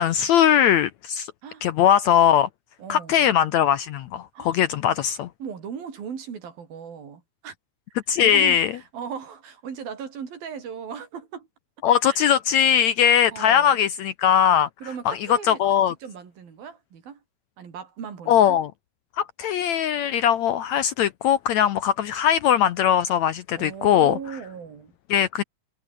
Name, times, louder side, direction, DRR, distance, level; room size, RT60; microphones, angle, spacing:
voice 1, 0.0-1.3 1.6-2.5 2.9-5.3 8.1-8.7 11.8-14.7 15.1-15.9 18.3-18.7 19.2-24.2 25.1-25.4, left 9 dB, 75° left, 1.7 m, -20 dB
voice 2, 2.8-3.3 4.3-4.6 5.4-7.6 8.2-11.5 12.0-12.2 13.3-13.8 14.8-15.6 16.0-17.2 17.6-18.6 23.6-24.9, right 7 dB, 85° right, 5.5 m, -37 dB
omnidirectional pair, 4.0 m